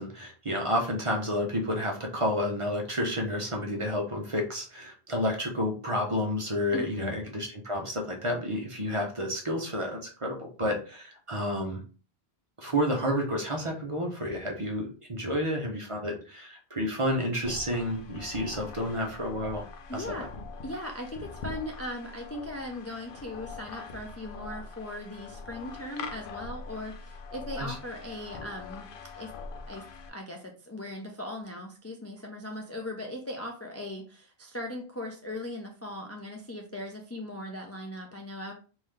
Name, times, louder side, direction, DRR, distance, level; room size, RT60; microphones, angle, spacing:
voice 1, 0.0-11.8 12.6-19.6 19.9-20.0 27.6-27.8, equal, 35° right, 1 dB, 0.7 m, -30 dB
voice 2, 6.7-7.1 19.9-20.3 20.6-28.9 29.1-29.3 29.7-38.5, left 1 dB, 20° left, 1 dB, 0.4 m, -39 dB
sound 1, 17.4-30.1, left 4 dB, 65° left, 0.7 m, -43 dB
3.7 x 2.7 x 3.2 m, 0.37 s
omnidirectional pair, 1.1 m